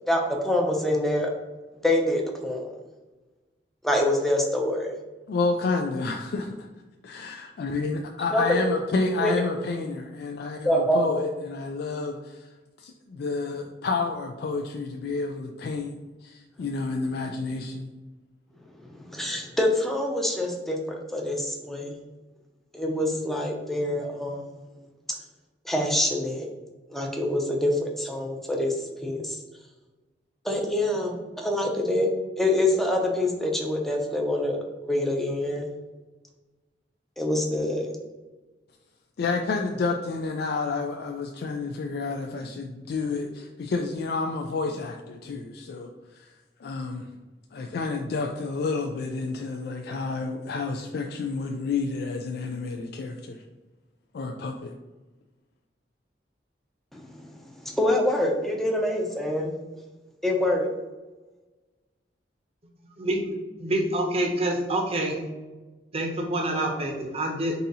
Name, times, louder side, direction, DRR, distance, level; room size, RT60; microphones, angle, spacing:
voice 1, 0.0-1.3 1.8-2.7 3.8-4.9 8.3-8.7 9.2-9.3 10.6-11.3 19.0-20.8 21.1-22.0 22.7-24.6 25.6-26.5 26.9-28.7 29.0-29.4 30.4-32.1 32.4-34.6 34.8-35.7 37.2-37.9 56.9-57.3 57.6-59.5 60.2-60.7, left 1 dB, ahead, 0 dB, 0.6 m, -25 dB
voice 2, 5.3-6.7 7.0-12.5 12.8-15.9 16.2-17.9 39.2-46.3 46.6-47.1 47.5-53.4 54.1-54.7, left 3 dB, 60° left, 3 dB, 0.3 m, -30 dB
voice 3, 63.6-65.2 65.9-67.6, right 1 dB, 35° right, 2 dB, 0.7 m, -27 dB
3.9 x 2.8 x 3.9 m, 1.2 s
head